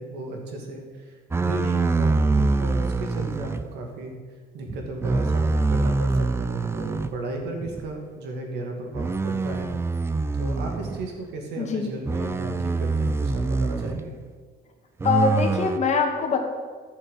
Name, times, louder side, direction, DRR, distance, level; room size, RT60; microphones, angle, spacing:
voice 1, 0.0-4.1 4.5-9.7 10.3-14.1, right 2 dB, 80° right, 2 dB, 2.2 m, -35 dB
sound 1, 1.3-3.7 4.7-7.2 7.6-7.9 8.9-11.1 12.1-14.0 15.0-15.8, right 3 dB, 15° right, 0.4 m, -25 dB
voice 2, 11.6-11.9 15.0-16.4, left 5 dB, 45° left, 3 dB, 1.8 m, -23 dB
11.0 x 7.3 x 5.7 m, 1.5 s
cardioid pair, 110°, 17 cm